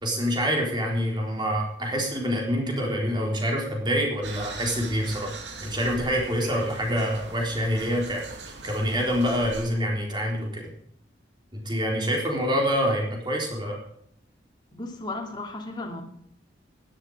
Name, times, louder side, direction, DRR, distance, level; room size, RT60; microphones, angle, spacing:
voice 1, 0.0-5.3 5.6-8.3 8.6-10.7 11.5-13.8, equal, 25° right, 0 dB, 4.0 m, -26 dB
sound 1, 4.2-9.7, right 3 dB, 85° right, 2.5 m, -40 dB
voice 2, 14.7-16.0, left 2 dB, 25° left, 2 dB, 2.6 m, -35 dB
16.0 x 11.5 x 4.9 m, 0.66 s
head